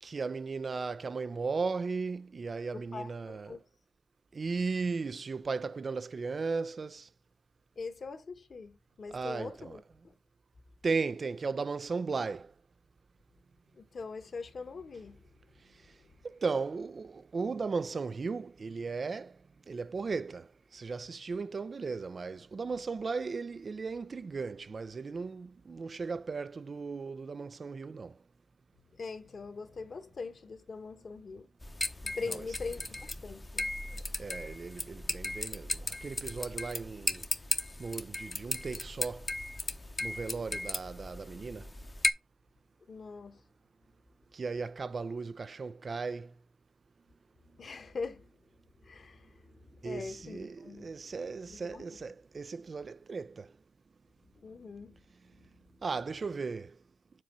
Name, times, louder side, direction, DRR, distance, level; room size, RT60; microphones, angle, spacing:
voice 1, 0.0-3.6 4.3-7.1 9.1-9.8 10.8-12.5 15.6-16.0 16.2-28.2 32.3-32.5 33.9-37.3 37.8-39.3 40.0-41.7 44.3-46.4 49.8-53.5 55.8-56.8, right 4 dB, 50° right, 0.4 m, -36 dB
voice 2, 2.7-3.6 7.8-10.1 13.7-15.5 28.9-31.5 32.0-33.7 42.9-43.4 47.6-48.4 48.8-50.9 51.5-51.8 54.4-55.0 55.3-55.5, left 4 dB, 55° left, 1.3 m, -42 dB
sound 1, 31.6-42.1, left 2 dB, 25° left, 0.8 m, -36 dB
7.5 x 2.9 x 6.0 m
cardioid pair, 65°, 0 cm